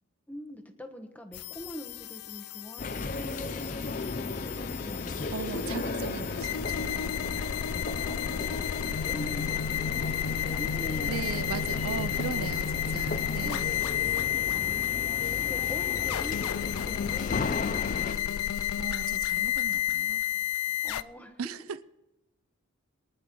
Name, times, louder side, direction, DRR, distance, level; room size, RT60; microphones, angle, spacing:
voice 1, 0.3-5.3 7.4-7.6 7.9-8.6 8.9-11.2 11.6-13.7 14.5-16.4 16.8-18.5 20.8-21.4, equal, 5° left, 1.1 m, -44 dB
sound 1, 1.3-21.0, left 10 dB, 85° left, 0.4 m, -32 dB
sound 2, 2.8-18.2, left 3 dB, 35° left, 0.5 m, -35 dB
voice 2, 5.3-7.4 8.8-9.0 11.0-13.9 18.8-20.2 21.4-21.8, right 6 dB, 80° right, 0.5 m, -38 dB
22.5 x 10.5 x 3.1 m
head